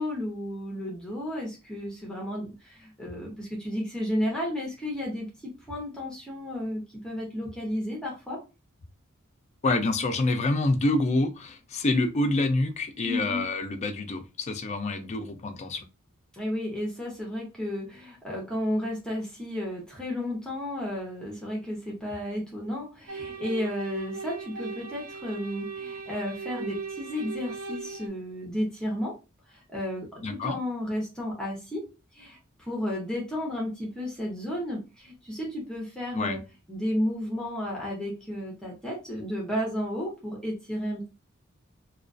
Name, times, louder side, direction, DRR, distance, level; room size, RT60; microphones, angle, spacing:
voice 1, 0.0-8.4 13.0-13.5 16.3-29.1 29.5-31.9 32.1-36.4 36.7-41.1, left 1 dB, 5° left, -3 dB, 0.7 m, -33 dB
voice 2, 9.6-15.8 30.2-30.6 36.1-36.4, left 2 dB, 35° left, 6 dB, 0.4 m, -27 dB
sound 1, 23.1-28.1, right 5 dB, 90° right, 0.5 m, -38 dB
2.3 x 2.2 x 2.4 m, 0.29 s
head